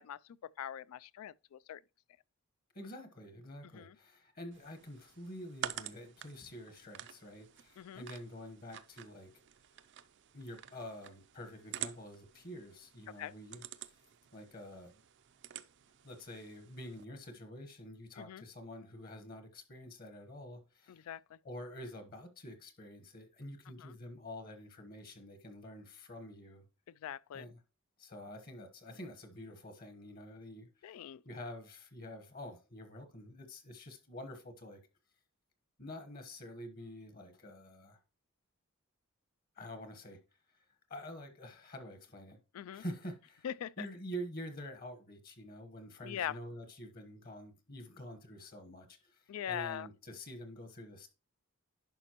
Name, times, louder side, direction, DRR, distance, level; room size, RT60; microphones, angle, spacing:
voice 1, 0.0-1.8 3.6-4.0 7.8-8.1 13.2-13.3 18.2-18.4 20.9-21.4 23.8-23.9 26.9-27.5 30.8-31.2 42.5-42.8 43.4-43.9 46.0-46.4 49.3-49.9, left 9 dB, 75° left, 0.3 m, -42 dB
voice 2, 2.7-9.3 10.3-13.9 14.3-15.0 16.0-21.1 21.4-26.7 27.3-27.6 28.0-31.0 31.2-34.8 35.8-38.0 39.6-40.2 40.5-40.6 40.9-42.4 42.7-43.5 43.8-51.1, equal, 40° left, 1.2 m, -47 dB
sound 1, 4.5-17.0, right 11 dB, 50° right, 0.4 m, -49 dB
11.0 x 5.0 x 2.9 m
head